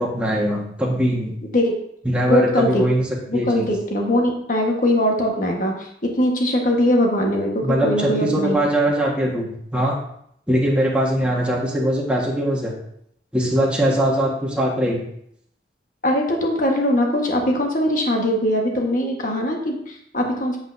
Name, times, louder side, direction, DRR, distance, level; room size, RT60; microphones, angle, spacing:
voice 1, 0.0-1.3 2.0-3.1 3.3-3.7 7.6-10.0 10.5-12.7 13.3-15.0, right 1 dB, 5° right, -3 dB, 1.5 m, -21 dB
voice 2, 2.2-2.8 3.3-8.5 16.0-20.6, left 1 dB, 45° left, 1 dB, 1.4 m, -21 dB
8.0 x 7.8 x 2.7 m, 0.71 s
head